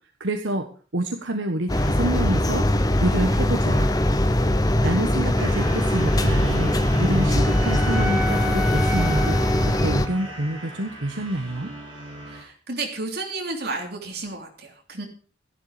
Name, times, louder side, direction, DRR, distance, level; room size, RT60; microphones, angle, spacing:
voice 1, 0.2-0.7 0.9-2.7 3.0-3.9 4.8-9.4 9.8-11.7, right 1 dB, 75° right, 4 dB, 1.3 m, -27 dB
sound 1, 1.7-10.1, left 1 dB, 20° left, 0.9 m, -21 dB
sound 2, 5.3-12.4, right 1 dB, 25° right, 5.7 m, -36 dB
Wind instrument woodwind instrument, 6.5-10.7, left 1 dB, 5° right, 1.5 m, -33 dB
voice 2, 12.3-15.1, right 3 dB, 55° right, 2 dB, 3.1 m, -32 dB
13.0 x 11.5 x 5.1 m, 0.38 s
head